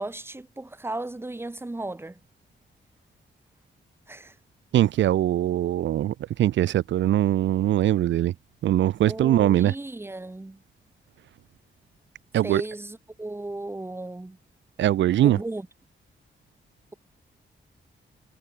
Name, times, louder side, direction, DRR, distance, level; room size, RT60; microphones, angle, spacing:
voice 1, 0.0-2.2 4.1-4.4 9.1-10.6 12.4-14.4 15.2-15.7, right 2 dB, 10° right, 1.2 m, -35 dB
voice 2, 4.7-8.3 8.6-9.7 12.3-12.6 14.8-15.4, right 12 dB, 80° right, 0.4 m, -22 dB
wide cardioid pair, 115°, 19 cm